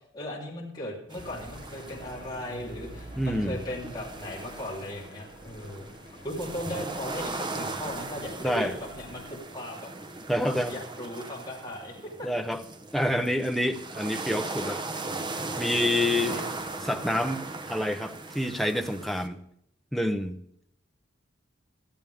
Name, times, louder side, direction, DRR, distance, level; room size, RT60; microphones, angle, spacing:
voice 1, 0.1-5.9 6.2-9.9 10.4-12.3 16.1-16.4, left 1 dB, 20° left, -4 dB, 3.6 m, -37 dB
sound 1, 1.1-19.3, right 3 dB, 25° right, 1.1 m, -38 dB
sound 2, 1.2-9.4, equal, 65° left, 6.0 m, -47 dB
voice 2, 3.2-3.6 8.4-8.8 10.3-10.7 12.2-12.6 12.9-14.8 15.6-16.4 16.8-19.4 19.9-20.4, left 1 dB, ahead, 6 dB, 0.8 m, -27 dB
20.0 x 13.0 x 3.6 m, 0.72 s
head